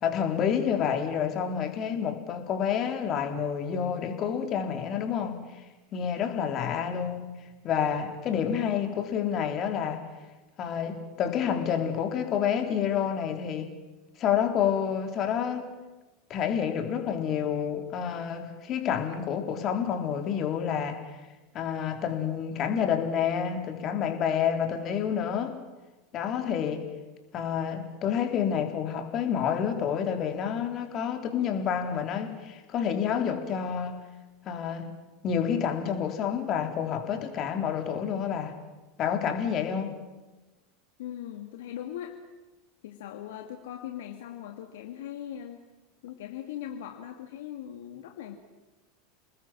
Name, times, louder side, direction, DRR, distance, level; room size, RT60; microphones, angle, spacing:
voice 1, 0.0-5.5 5.9-7.3 7.6-10.0 10.6-13.7 14.2-15.7 16.3-21.0 21.5-25.6 26.1-26.9 27.3-34.0 34.5-34.9 35.2-38.6 39.0-39.9, left 8 dB, 40° left, 5 dB, 3.7 m, -29 dB
voice 2, 41.0-42.2 42.8-45.6 46.0-48.3, left 11 dB, 65° left, 4 dB, 2.0 m, -40 dB
29.5 x 20.0 x 7.6 m, 1.2 s
figure-of-eight pair, 85°, 0 cm